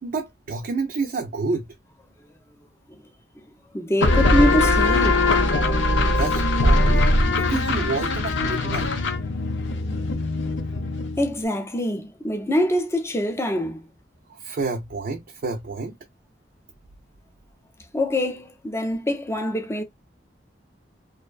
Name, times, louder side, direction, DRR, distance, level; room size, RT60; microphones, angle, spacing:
voice 1, 0.0-1.7 5.9-8.9 14.3-16.0, right 4 dB, 55° right, 0.4 m, -29 dB
voice 2, 3.7-5.3 11.2-13.9 17.9-19.8, left 1 dB, 15° left, 0.5 m, -24 dB
sound 1, 4.0-11.4, left 2 dB, 90° left, 0.6 m, -21 dB
2.5 x 2.1 x 2.3 m
head